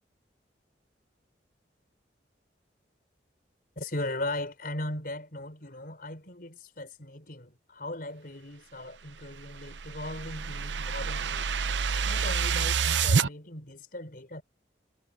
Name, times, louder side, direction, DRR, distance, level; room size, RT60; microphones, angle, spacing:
voice 1, 3.8-11.5 12.1-14.4, left 1 dB, 55° left, 5.0 m, -38 dB
sound 1, 9.2-13.3, right 6 dB, 80° right, 0.7 m, -28 dB
head